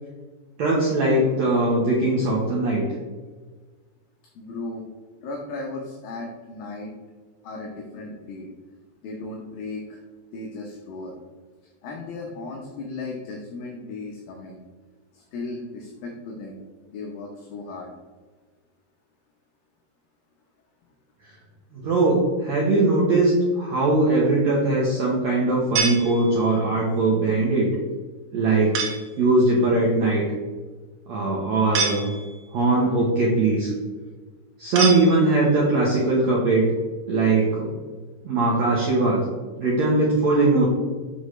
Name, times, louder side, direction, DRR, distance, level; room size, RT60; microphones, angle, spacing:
voice 1, 0.6-2.8 21.7-27.7 28.3-28.8 29.2-30.2 31.1-32.1 32.5-33.7 34.6-36.7 37.1-37.7 38.2-39.2 39.6-40.7, right 2 dB, 90° right, -4 dB, 1.5 m, -20 dB
voice 2, 4.4-4.8 5.2-6.9 7.4-8.5 9.0-10.0 10.3-11.2 11.8-14.6 15.1-16.6 16.9-17.9, left 3 dB, 70° left, 0 dB, 2.3 m, -36 dB
sound 1, 25.8-26.7 28.7-29.2 31.7-32.6 34.8-35.6, right 5 dB, 75° right, 2.8 m, -28 dB
7.8 x 6.2 x 3.2 m, 1.4 s
omnidirectional pair, 4.8 m